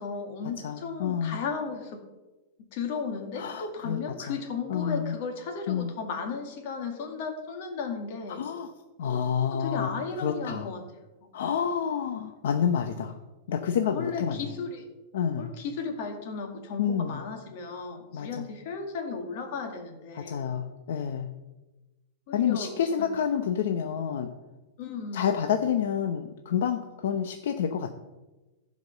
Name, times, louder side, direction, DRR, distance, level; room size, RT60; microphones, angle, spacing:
voice 1, 0.0-2.0 2.7-8.4 9.5-10.8 11.2-11.3 13.9-14.8 15.4-20.4 22.3-22.7 23.0-23.1 24.8-25.4, left 5 dB, 45° left, 3 dB, 2.1 m, -35 dB
voice 2, 0.6-1.4 3.4-4.0 4.3-4.4 4.7-5.1 5.7-5.9 8.4-8.7 9.0-9.9 10.2-10.7 11.3-13.2 13.5-14.4 15.1-15.5 16.8-17.2 18.1-18.5 20.2-21.3 22.3-24.3 25.1-27.9, left 8 dB, 70° left, 6 dB, 0.8 m, -28 dB
14.5 x 5.3 x 6.6 m, 1.1 s
supercardioid pair, 170°, 0 cm